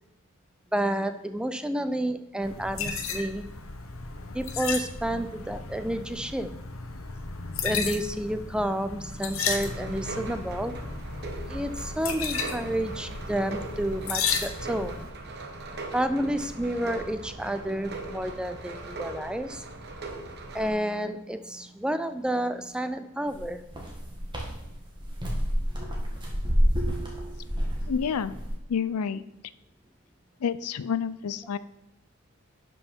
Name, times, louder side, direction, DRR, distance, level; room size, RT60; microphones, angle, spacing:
voice 1, 0.7-3.5 4.3-6.5 7.6-10.7 11.5-15.0 15.9-19.7 20.5-23.6, right 1 dB, 5° right, 10 dB, 0.4 m, -30 dB
sound 1, 2.4-15.1, left 5 dB, 65° left, 1.0 m, -34 dB
sound 2, 9.4-20.7, right 2 dB, 45° right, 1.1 m, -40 dB
sound 3, 23.3-28.5, equal, 20° right, 1.7 m, -28 dB
voice 2, 27.9-28.3 28.7-29.2 30.4-31.6, left 7 dB, 85° left, 16 dB, 0.4 m, -28 dB
11.5 x 5.5 x 4.5 m, 0.88 s
head